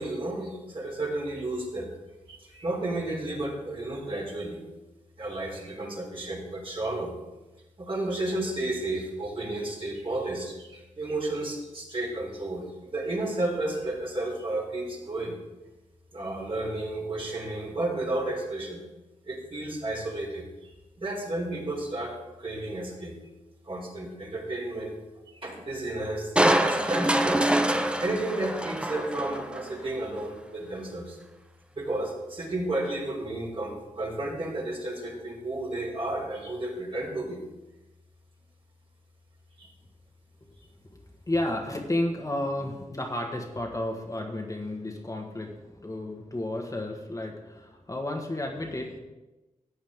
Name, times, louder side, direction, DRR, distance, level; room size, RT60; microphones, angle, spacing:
voice 1, 0.0-1.9 2.3-4.7 5.2-7.1 7.8-15.3 16.1-18.9 19.3-23.2 23.6-25.0 25.4-26.3 26.6-27.4 28.0-31.2 31.7-37.4 39.6-39.7, right 2 dB, 40° right, -1 dB, 3.2 m, -32 dB
Crushing, 26.4-29.7 30.2-30.3, right 1 dB, 5° right, 0.7 m, -25 dB
voice 2, 41.3-49.0, left 1 dB, 25° left, 0 dB, 1.6 m, -32 dB
14.5 x 8.7 x 3.6 m, 1.1 s
cardioid pair, 65°, 14 cm